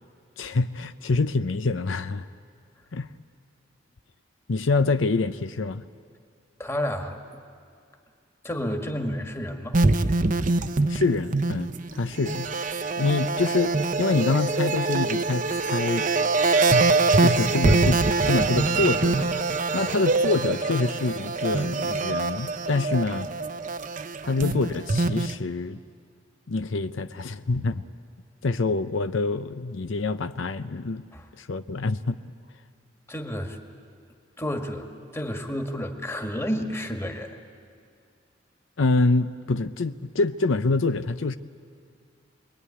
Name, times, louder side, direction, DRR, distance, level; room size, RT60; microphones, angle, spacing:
voice 1, 0.4-2.3 2.9-3.1 4.5-5.8 10.9-12.5 13.0-16.1 17.2-18.0 18.3-19.3 19.7-23.3 24.2-25.8 26.5-27.8 28.4-31.1 31.4-32.2 38.8-41.4, left 3 dB, 80° left, 0.7 m, -26 dB
voice 2, 6.6-7.4 8.4-9.8 19.7-19.9 31.1-31.3 33.1-33.6 34.4-34.9 35.1-37.4, equal, 15° left, 1.8 m, -31 dB
sound 1, 9.7-25.4, right 3 dB, 40° right, 0.7 m, -24 dB
26.5 x 21.5 x 9.8 m
head